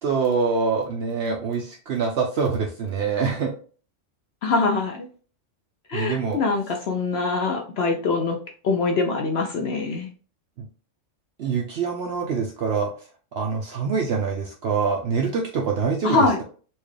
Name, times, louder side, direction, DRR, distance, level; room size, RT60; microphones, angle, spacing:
voice 1, 0.0-3.5 5.9-6.4 10.6-10.7 11.4-12.9 13.3-16.4, right 5 dB, 60° right, 1 dB, 0.8 m, -25 dB
voice 2, 4.4-5.1 5.9-8.4 8.6-10.1 16.0-16.4, left 3 dB, 65° left, 3 dB, 0.8 m, -23 dB
4.4 x 2.4 x 3.1 m, 0.39 s
omnidirectional pair, 1.3 m